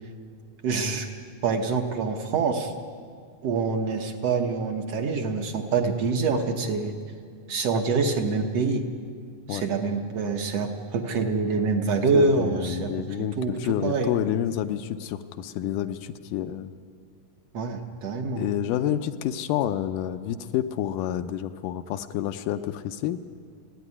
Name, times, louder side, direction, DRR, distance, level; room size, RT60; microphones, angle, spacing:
voice 1, 0.6-1.1 1.4-2.7 3.4-7.0 7.5-8.8 9.5-14.1 17.5-18.5, right 4 dB, 60° right, 4 dB, 1.8 m, -26 dB
voice 2, 12.1-16.7 18.4-23.2, left 11 dB, 80° left, 9 dB, 2.2 m, -29 dB
29.5 x 10.0 x 9.8 m, 2.2 s
omnidirectional pair, 3.9 m